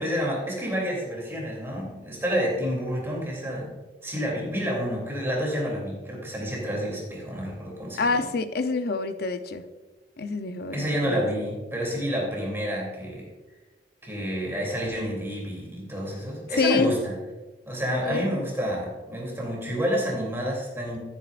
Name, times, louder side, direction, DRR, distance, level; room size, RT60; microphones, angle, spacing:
voice 1, 0.0-3.7 4.0-8.0 10.7-13.3 14.0-17.1 17.7-21.0, equal, 15° right, -3 dB, 3.0 m, -29 dB
voice 2, 8.0-9.6 10.2-11.4 16.6-16.9 18.0-18.4, left 4 dB, 60° left, 9 dB, 0.7 m, -27 dB
14.0 x 9.2 x 2.5 m, 1.2 s
head